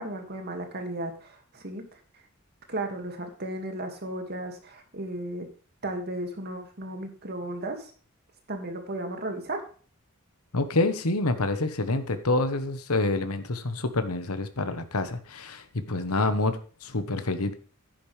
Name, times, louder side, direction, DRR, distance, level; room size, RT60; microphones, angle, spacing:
voice 1, 0.0-2.2 2.7-5.5 5.8-7.9 8.5-9.6, right 1 dB, 45° right, 5 dB, 2.1 m, -35 dB
voice 2, 10.5-17.5, left 2 dB, 85° left, 9 dB, 1.2 m, -27 dB
10.5 x 10.5 x 3.4 m, 0.40 s
head